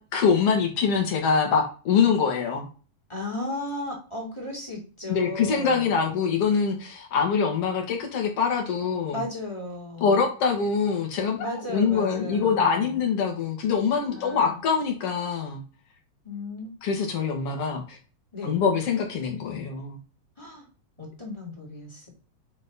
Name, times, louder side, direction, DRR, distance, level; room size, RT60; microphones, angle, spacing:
voice 1, 0.1-2.7 5.1-9.2 10.0-15.6 16.8-18.0 18.4-20.0, left 6 dB, 55° left, 1 dB, 2.5 m, -24 dB
voice 2, 3.1-6.0 9.1-10.2 11.4-13.0 14.1-14.6 16.2-16.7 17.4-17.5 18.3-18.6 20.4-20.6 21.0-22.1, left 2 dB, 10° left, -3 dB, 1.8 m, -35 dB
8.9 x 3.2 x 4.1 m, 0.36 s
omnidirectional pair, 3.4 m